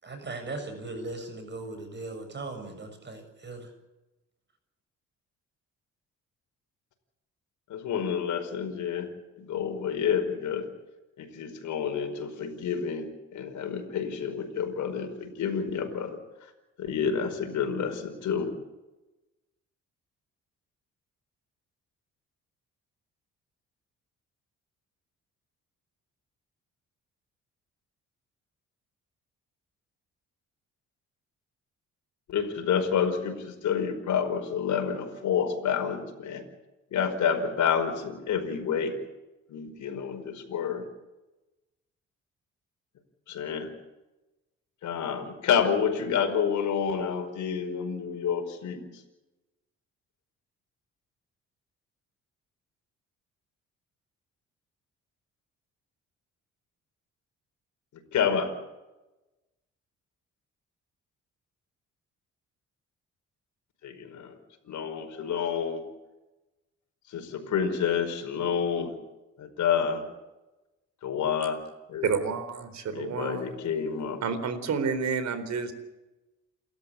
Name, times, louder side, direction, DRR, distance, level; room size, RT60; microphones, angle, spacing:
voice 1, 0.0-3.7, right 2 dB, 35° right, 6 dB, 7.4 m, -38 dB
voice 2, 7.7-9.1 9.4-10.7 11.2-16.5 16.8-18.5 32.3-36.4 36.9-39.0 39.5-40.9 43.3-43.7 44.8-48.8 58.1-58.5 63.8-64.4 64.6-65.8 67.1-68.9 69.4-70.1 71.0-71.6 71.9-72.1 72.9-74.2, left 7 dB, 75° left, 5 dB, 5.1 m, -29 dB
voice 3, 72.0-73.6 74.2-75.7, right 5 dB, 65° right, 12 dB, 4.1 m, -29 dB
29.5 x 13.5 x 8.6 m, 1.0 s
cardioid pair, 90°, 30 cm